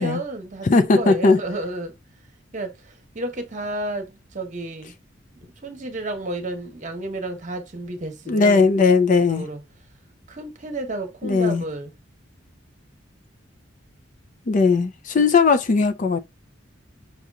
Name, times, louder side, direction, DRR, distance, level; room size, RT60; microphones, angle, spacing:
voice 1, 0.0-1.9 2.5-4.9 5.4-8.6 9.3-9.6 10.3-11.9 15.2-15.3, right 2 dB, 40° right, 1.0 m, -31 dB
voice 2, 0.6-1.4 8.3-9.5 11.2-11.6 14.5-16.2, left 4 dB, 40° left, 0.4 m, -18 dB
5.8 x 2.8 x 2.3 m
head